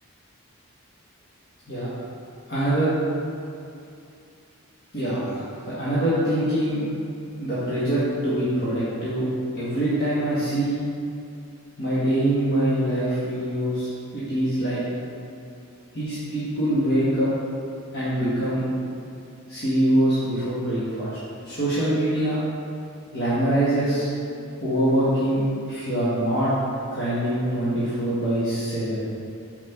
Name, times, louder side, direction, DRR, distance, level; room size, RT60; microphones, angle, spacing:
voice 1, 2.5-2.9 4.9-6.9 7.4-9.2 9.5-10.8 11.8-14.8 15.9-17.3 17.9-18.6 19.5-22.4 23.1-24.1 24.6-26.5 26.9-29.0, right 1 dB, 45° left, -12 dB, 1.6 m, -24 dB
5.7 x 4.7 x 5.8 m, 2.5 s
head